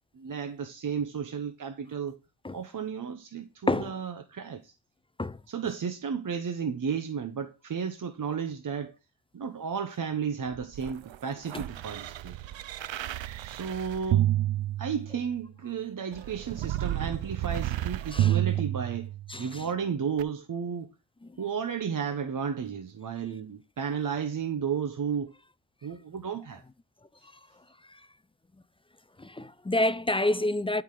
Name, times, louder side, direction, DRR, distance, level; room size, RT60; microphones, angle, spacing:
voice 1, 0.1-2.2 2.5-4.7 5.5-8.9 9.3-12.4 13.4-14.3 14.8-19.1 19.4-20.9 21.4-25.3 25.8-26.6, right 7 dB, 45° right, 0.9 m, -33 dB
sound 1, 10.5-15.4 16.1-19.4 20.2-20.3, right 13 dB, 85° right, 0.6 m, -30 dB
voice 2, 29.2-30.8, left 1 dB, 15° left, 0.3 m, -28 dB
12.0 x 4.8 x 3.8 m
wide cardioid pair, 105°, 44 cm